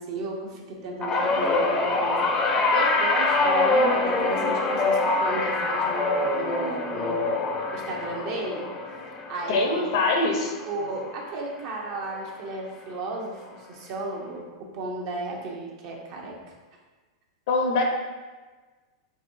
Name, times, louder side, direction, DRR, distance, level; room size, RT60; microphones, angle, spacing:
voice 1, 0.0-7.4 7.7-8.6 9.3-9.9 10.7-13.4 13.7-16.4, right 2 dB, 55° right, -1 dB, 0.8 m, -34 dB
sound 1, 1.0-11.5 11.8-12.2 13.3-13.4, left 3 dB, 30° left, 0.6 m, -25 dB
voice 2, 9.5-10.5 17.5-17.8, left 3 dB, 65° left, 1 dB, 0.7 m, -23 dB
4.9 x 2.6 x 2.6 m, 1.3 s
hypercardioid pair, 100°, 3 cm